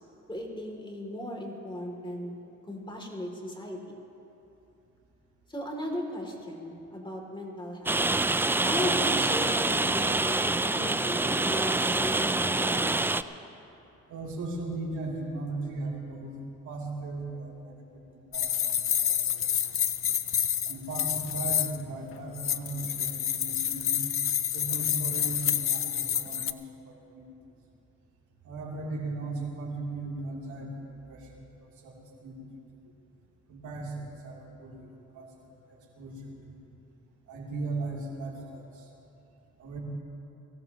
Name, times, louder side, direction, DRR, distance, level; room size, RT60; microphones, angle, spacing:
voice 1, 0.3-2.3 2.7-4.0 5.5-8.0 8.6-13.1, equal, 15° left, 0 dB, 2.8 m, -36 dB
Rain, 7.9-13.2, right 2 dB, 10° right, 0.3 m, -26 dB
voice 2, 14.1-16.3 16.6-19.4 20.7-23.9 24.5-26.6 26.8-27.3 28.4-31.9 32.2-32.5 33.5-35.3 35.7-36.6 37.3-38.8 39.6-39.8, right 2 dB, 75° right, -3 dB, 3.1 m, -37 dB
sound 1, 18.3-21.8 22.4-26.5, left 9 dB, 45° left, 0.6 m, -28 dB
22.0 x 17.0 x 3.0 m, 2.8 s
cardioid pair, 90°, 30 cm